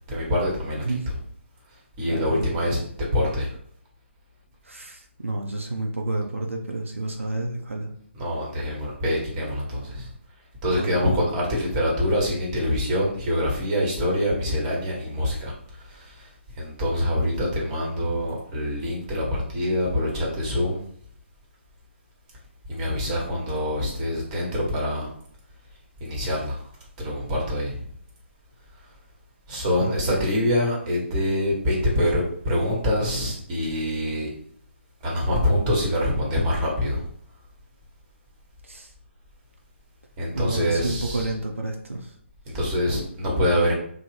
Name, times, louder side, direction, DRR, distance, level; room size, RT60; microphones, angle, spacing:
voice 1, 0.1-0.8 2.0-3.5 8.1-10.1 10.6-15.5 15.8-16.3 16.5-20.8 22.7-25.1 26.0-26.7 27.0-27.8 29.5-34.3 35.0-37.0 40.2-41.3 42.5-43.7, left 1 dB, 25° right, -3 dB, 1.0 m, -25 dB
voice 2, 2.0-2.5 4.6-7.9 10.7-11.1 29.8-30.3 38.6-38.9 40.4-42.1, right 2 dB, 85° right, 2 dB, 0.5 m, -30 dB
2.7 x 2.0 x 3.2 m, 0.64 s
figure-of-eight pair, 140°, 7 cm